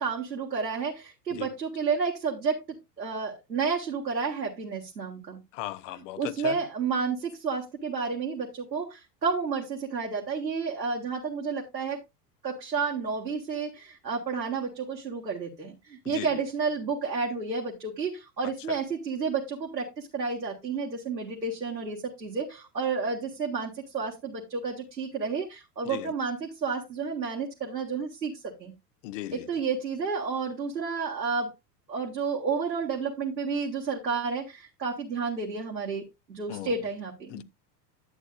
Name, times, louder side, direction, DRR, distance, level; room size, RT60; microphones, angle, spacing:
voice 1, 0.0-2.6 3.0-5.4 6.2-12.0 12.4-28.3 28.6-28.7 29.3-31.5 31.9-37.4, right 5 dB, 85° right, 1.6 m, -31 dB
voice 2, 5.5-6.6 16.0-16.4 18.7-18.8 25.8-26.1 29.0-29.5 36.5-36.7 37.3-37.4, left 15 dB, 50° left, 0.8 m, -37 dB
11.0 x 8.2 x 2.4 m
figure-of-eight pair, 80°, 50 cm